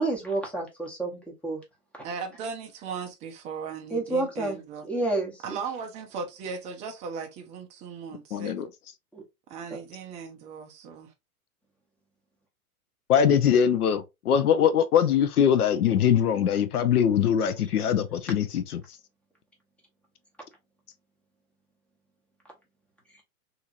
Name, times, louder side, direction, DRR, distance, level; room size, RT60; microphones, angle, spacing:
voice 1, 0.0-1.6 3.9-4.6 4.9-5.6 9.1-9.2, right 2 dB, 5° left, 0.9 m, -29 dB
voice 2, 2.0-4.9 5.4-8.5 9.5-11.1, right 5 dB, 15° right, 0.4 m, -37 dB
voice 3, 8.3-8.7 13.1-18.8, left 8 dB, 80° left, 0.7 m, -22 dB
2.8 x 2.8 x 2.4 m
hypercardioid pair, 105°, 45 cm